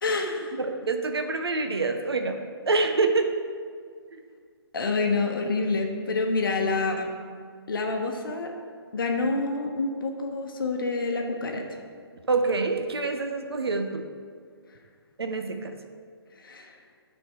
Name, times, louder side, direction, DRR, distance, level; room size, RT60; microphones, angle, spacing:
voice 1, 0.0-0.6 4.7-7.1 7.7-8.5 8.9-11.8 16.4-16.8, left 3 dB, 55° left, 2 dB, 0.9 m, -27 dB
voice 2, 0.6-2.4 2.7-3.3 12.3-14.0 15.2-15.7, right 3 dB, 70° right, 5 dB, 0.7 m, -26 dB
8.7 x 4.4 x 4.7 m, 2.1 s
figure-of-eight pair, 135°, 14 cm